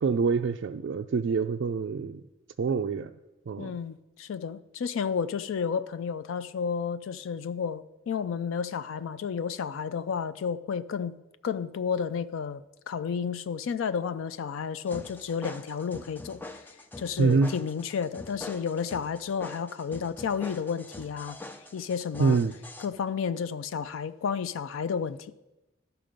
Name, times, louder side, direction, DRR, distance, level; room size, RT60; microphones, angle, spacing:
voice 1, 0.0-2.2 2.6-3.1 3.5-3.8 17.2-17.5 22.2-22.5, right 5 dB, 65° right, 0.3 m, -25 dB
voice 2, 3.6-11.1 11.4-12.6 12.9-16.4 17.0-21.4 21.7-22.4 22.8-25.3, left 6 dB, 85° left, 0.4 m, -31 dB
sound 1, 14.9-22.9, left 2 dB, 10° left, 0.4 m, -44 dB
12.5 x 5.8 x 5.2 m
head